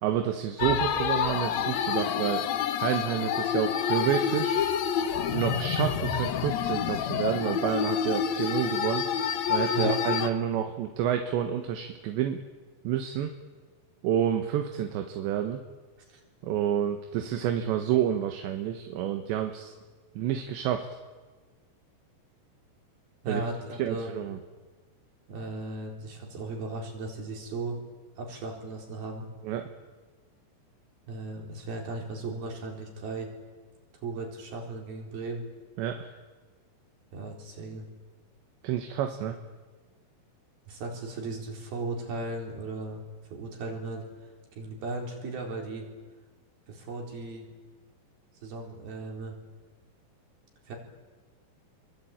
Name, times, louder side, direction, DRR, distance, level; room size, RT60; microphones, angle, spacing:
voice 1, 0.0-2.5 2.8-4.6 5.3-9.1 9.5-12.4 12.9-13.3 14.0-15.6 16.4-19.7 20.2-20.9 23.3-23.5 23.8-24.4 29.4-29.7 35.8-36.1 38.6-39.4, right 10 dB, 80° right, 5 dB, 3.5 m, -29 dB
sound 1, 0.6-10.3, left 8 dB, 70° left, 1.6 m, -28 dB
voice 2, 23.2-24.1 25.3-27.8 28.2-29.3 31.1-33.3 34.0-35.4 37.1-37.9 39.2-39.3 40.7-43.0 43.3-44.1 44.5-45.8 46.7-47.5 48.4-49.4 50.7-50.8, right 2 dB, 60° right, 1 dB, 6.0 m, -36 dB
28.0 x 24.0 x 8.9 m, 1.4 s
omnidirectional pair, 5.1 m